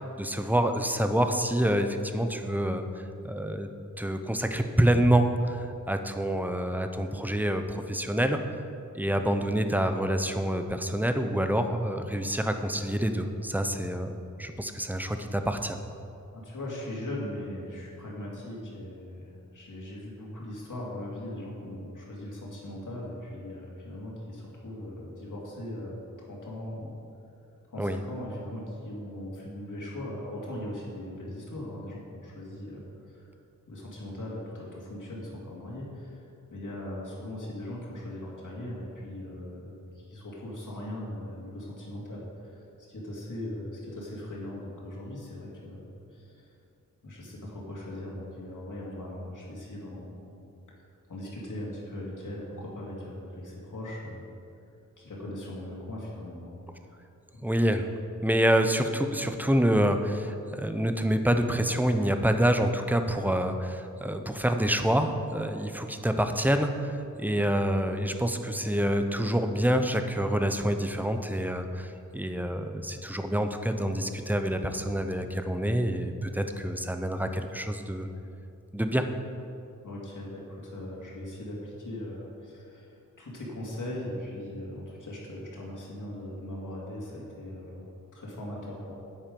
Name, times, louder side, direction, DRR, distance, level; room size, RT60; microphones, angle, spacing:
voice 1, 0.0-3.7 4.0-8.4 8.9-15.8 27.8-28.0 57.4-57.9 58.2-78.1 78.7-79.1, right 1 dB, 5° right, 7 dB, 0.6 m, -27 dB
voice 2, 16.3-27.0 27.7-33.3 33.7-46.5 47.0-50.3 51.1-54.3 55.0-56.6 56.9-57.0 57.3-57.5 79.8-88.9, left 1 dB, 70° left, -4 dB, 2.4 m, -39 dB
9.1 x 8.8 x 5.3 m, 2.6 s
wide cardioid pair, 100°, 33 cm